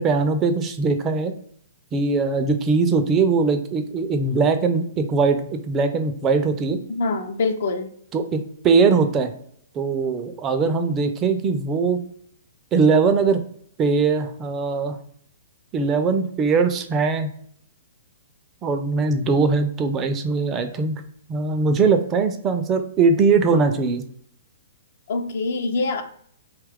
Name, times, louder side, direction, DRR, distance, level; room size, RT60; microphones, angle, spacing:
voice 1, 0.0-1.3 1.9-6.8 8.1-9.3 9.8-12.0 12.7-13.4 13.8-15.0 15.7-17.3 18.6-21.0 21.3-24.0, right 4 dB, 25° right, 7 dB, 0.4 m, -21 dB
voice 2, 6.9-7.9 25.1-26.0, left 3 dB, 65° left, 6 dB, 0.5 m, -24 dB
2.8 x 2.3 x 3.4 m, 0.64 s
hypercardioid pair, 120°, 0 cm